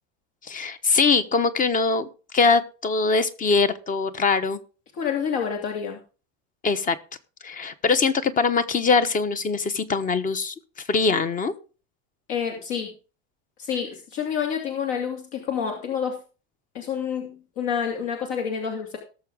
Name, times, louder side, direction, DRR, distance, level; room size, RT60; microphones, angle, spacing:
voice 1, 0.5-2.1 2.3-4.6 6.6-7.0 7.4-10.5 10.9-11.5, left 4 dB, 20° left, 13 dB, 1.1 m, -22 dB
voice 2, 4.9-6.0 12.3-12.9 13.6-16.2 16.7-19.0, left 7 dB, 60° left, 3 dB, 2.8 m, -28 dB
18.5 x 7.1 x 3.6 m, 0.34 s
supercardioid pair, 145°, 36 cm